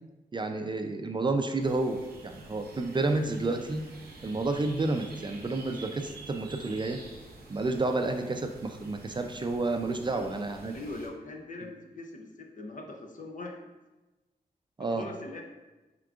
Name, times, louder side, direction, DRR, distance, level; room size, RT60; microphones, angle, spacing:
voice 1, 0.3-3.8 4.2-7.0 7.5-10.8 14.8-15.1, right 2 dB, 30° right, 5 dB, 0.4 m, -30 dB
sound 1, 1.6-11.1, right 2 dB, 90° right, 0.7 m, -48 dB
voice 2, 10.7-13.6 14.8-15.4, left 2 dB, 55° left, 2 dB, 0.7 m, -41 dB
4.8 x 3.6 x 2.4 m, 1.1 s
cardioid pair, 65°, 16 cm